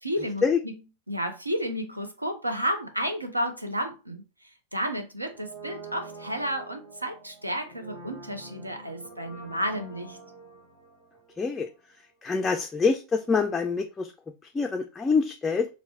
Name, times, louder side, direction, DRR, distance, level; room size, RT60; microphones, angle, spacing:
voice 1, 0.0-0.7 1.1-4.2 4.7-10.2, equal, 85° right, 0.6 m, -31 dB
Brass instrument, 5.3-12.2 12.4-12.5, right 3 dB, 65° right, 1.3 m, -46 dB
voice 2, 11.4-11.7 12.2-14.1 14.4-15.7, left 5 dB, 15° left, 0.3 m, -25 dB
3.8 x 2.0 x 3.1 m
figure-of-eight pair, 90°, 0 cm